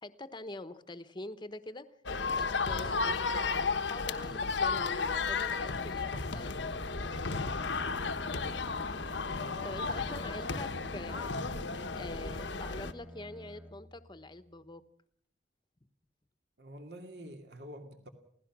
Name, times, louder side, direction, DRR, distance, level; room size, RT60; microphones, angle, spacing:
voice 1, 0.0-1.8 2.3-7.2 9.6-14.8, left 2 dB, 25° left, 1.1 m, -45 dB
sound 1, 2.1-12.9, left 4 dB, 85° left, 1.2 m, -33 dB
Bowed string instrument, 6.6-14.6, equal, 10° right, 1.8 m, -49 dB
voice 2, 7.6-8.4 9.7-9.9 16.6-18.1, equal, 65° right, 2.4 m, -48 dB
28.5 x 17.0 x 6.1 m
head